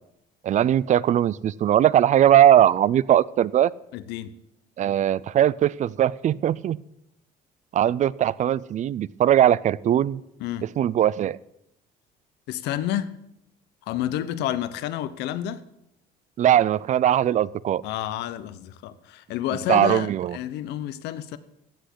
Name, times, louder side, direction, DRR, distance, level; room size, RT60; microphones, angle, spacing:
voice 1, 0.4-3.7 4.8-6.8 7.7-10.2 10.8-11.4 16.4-17.8 19.7-20.4, right 11 dB, 45° right, 0.4 m, -20 dB
voice 2, 3.9-4.3 10.4-10.6 12.5-13.1 13.9-15.6 17.8-21.4, left 12 dB, 85° left, 0.9 m, -29 dB
15.5 x 6.3 x 8.3 m
cardioid pair, 110°, 17 cm